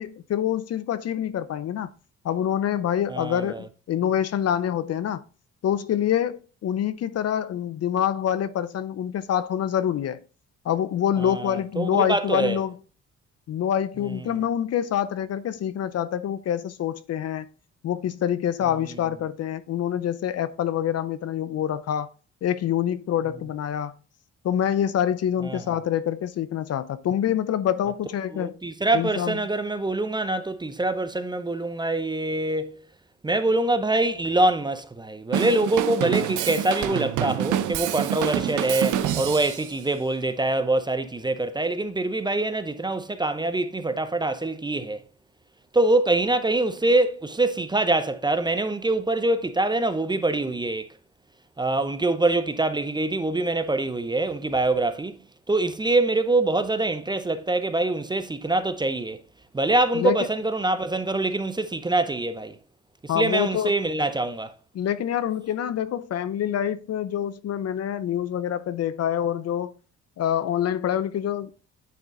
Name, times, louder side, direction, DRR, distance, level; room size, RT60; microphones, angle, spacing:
voice 1, 0.0-1.9 2.2-5.2 5.6-10.2 10.6-12.7 13.5-17.5 17.8-22.1 22.4-23.9 24.4-28.6 28.9-29.4 59.9-60.2 63.1-63.7 64.7-69.7 70.2-71.5, left 10 dB, 55° left, 0.6 m, -26 dB
voice 2, 3.1-3.7 11.2-12.6 14.0-14.4 25.4-25.6 28.3-32.8 33.2-45.0 45.7-50.9 51.6-55.2 55.5-59.2 59.5-62.6 63.1-64.5, right 2 dB, 15° right, 0.6 m, -24 dB
Drum kit / Drum, 35.3-39.7, right 10 dB, 80° right, 0.6 m, -27 dB
9.3 x 3.8 x 3.6 m
cardioid pair, 90°, 30 cm